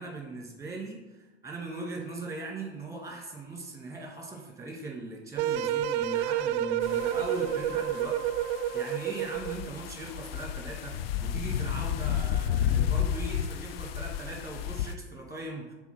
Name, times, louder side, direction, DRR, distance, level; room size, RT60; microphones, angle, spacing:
voice 1, 0.0-8.2 8.5-11.0 11.2-15.7, right 2 dB, 10° right, -1 dB, 2.0 m, -39 dB
sound 1, 5.4-9.7, right 10 dB, 45° right, 0.4 m, -29 dB
sound 2, 6.8-14.9, left 9 dB, 60° left, 0.5 m, -32 dB
5.9 x 4.3 x 5.6 m, 1.1 s
figure-of-eight pair, 85°, 34 cm